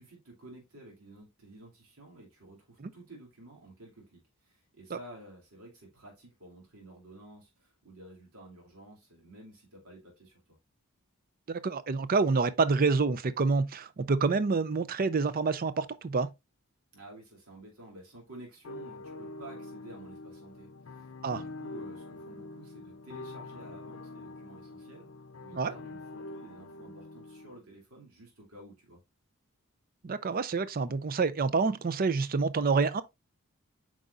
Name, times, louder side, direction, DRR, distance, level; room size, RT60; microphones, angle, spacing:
voice 1, 0.0-10.4 16.9-25.1 25.4-29.0, right 2 dB, 85° right, 2.7 m, -52 dB
voice 2, 11.5-16.3 21.2-21.4 25.5-25.7 30.0-33.0, right 4 dB, 40° right, 0.5 m, -27 dB
sound 1, 18.6-27.6, left 2 dB, 65° left, 0.6 m, -45 dB
8.0 x 4.8 x 2.4 m
head